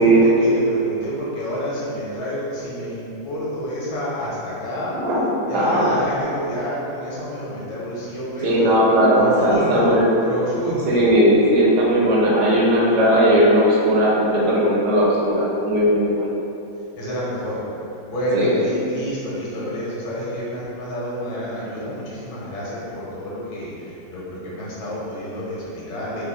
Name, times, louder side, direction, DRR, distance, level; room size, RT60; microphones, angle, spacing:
voice 1, 0.0-5.1 5.5-8.8 9.2-11.0 17.0-26.2, equal, 85° left, -7 dB, 1.9 m, -28 dB
voice 2, 5.5-5.9 8.4-10.1 10.9-16.3 18.3-18.5, right 1 dB, 60° right, -5 dB, 1.3 m, -17 dB
4.8 x 2.4 x 4.3 m, 2.9 s
omnidirectional pair, 2.2 m